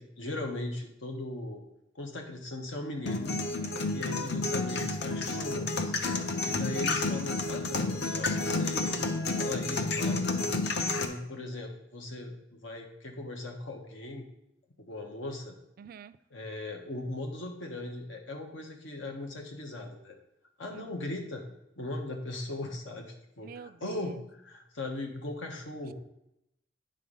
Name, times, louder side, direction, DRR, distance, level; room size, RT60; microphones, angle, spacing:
voice 1, 0.0-1.6 1.9-3.3 3.9-5.9 6.4-9.0 9.3-10.6 10.9-14.3 14.8-15.6 16.3-20.1 20.6-21.4 21.8-25.9, left 2 dB, 85° left, 3 dB, 1.3 m, -39 dB
sound 1, 3.1-11.0, left 3 dB, 60° left, 0.7 m, -30 dB
voice 2, 3.6-4.0 15.8-16.2 20.7-20.8 23.4-24.2, right 6 dB, 50° right, 15 dB, 0.3 m, -46 dB
9.4 x 3.8 x 5.4 m, 0.83 s
head